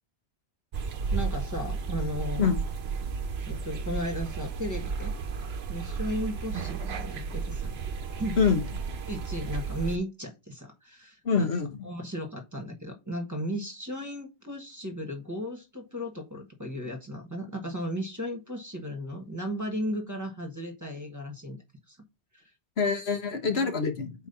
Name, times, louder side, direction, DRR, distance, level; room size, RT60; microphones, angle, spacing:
sound 1, 0.7-10.0, right 5 dB, 80° right, 1.0 m, -33 dB
voice 1, 1.1-2.5 3.5-5.1 5.7-7.7 8.2-8.4 9.1-11.5 11.8-21.6 21.9-22.0 22.3-22.4 23.5-23.7, equal, 20° right, 1.3 m, -35 dB
voice 2, 11.2-11.7 22.8-24.1, left 5 dB, 85° left, 1.3 m, -25 dB
4.5 x 4.2 x 5.4 m
omnidirectional pair, 1.0 m